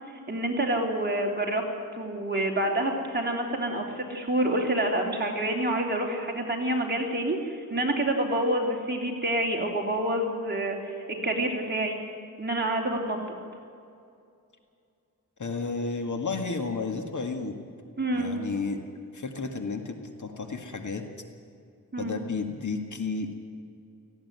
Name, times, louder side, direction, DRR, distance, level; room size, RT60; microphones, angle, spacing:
voice 1, 0.3-1.6 1.9-10.9 11.2-12.0 12.4-13.2 18.0-18.3 21.9-22.2, right 1 dB, 30° right, 0 dB, 3.4 m, -27 dB
voice 2, 15.4-17.6 18.1-18.8 19.1-21.0 22.0-23.3, left 4 dB, 60° left, 5 dB, 2.0 m, -32 dB
18.0 x 15.5 x 9.5 m, 2.5 s
wide cardioid pair, 105°, 34 cm